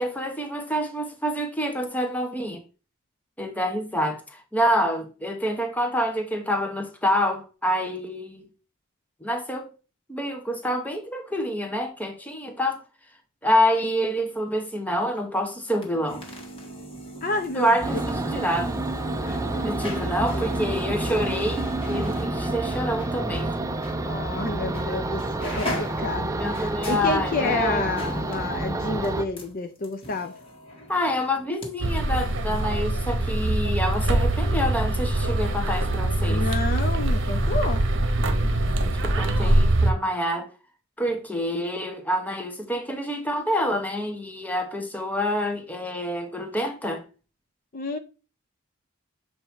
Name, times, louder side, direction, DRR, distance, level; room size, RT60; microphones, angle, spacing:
voice 1, 0.0-2.6 3.4-8.5 9.2-9.7 10.1-12.8 13.4-16.3 17.5-18.8 19.6-23.5 26.4-27.9 30.9-36.4 38.9-40.5 41.0-47.0, equal, 10° left, 1.0 m, -27 dB
sound 1, 15.7-23.5 23.8-24.0 24.7-24.9 25.2-31.7 32.0-32.1, left 1 dB, 30° left, 1.6 m, -39 dB
voice 2, 17.2-17.7 19.2-19.7 20.3-20.5 24.0-30.3 36.3-37.8 47.7-48.0, left 3 dB, 45° left, 0.5 m, -29 dB
sound 2, 17.8-29.2, right 2 dB, 15° right, 0.5 m, -29 dB
sound 3, 31.8-39.9, right 1 dB, 60° right, 1.0 m, -23 dB
7.5 x 2.8 x 4.5 m
head